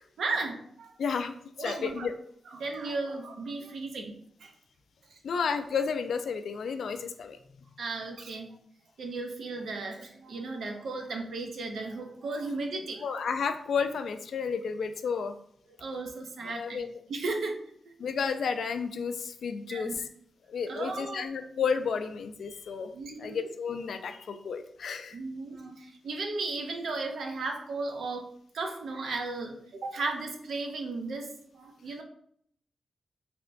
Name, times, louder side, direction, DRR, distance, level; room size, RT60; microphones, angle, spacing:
voice 1, 0.2-1.0 1.6-2.1 2.5-4.5 5.1-5.2 7.8-8.5 9.0-13.2 15.8-17.6 17.8-17.9 19.7-19.9 20.7-21.3 22.9-23.5 25.1-32.0, right 3 dB, 75° right, 3 dB, 0.6 m, -35 dB
voice 2, 1.0-2.1 5.2-7.4 13.0-15.3 16.4-16.9 18.0-19.9 20.5-22.9 23.2-25.2, left 6 dB, 75° left, 8 dB, 0.3 m, -32 dB
3.3 x 2.9 x 2.5 m, 0.66 s
cardioid pair, 90°, 0 cm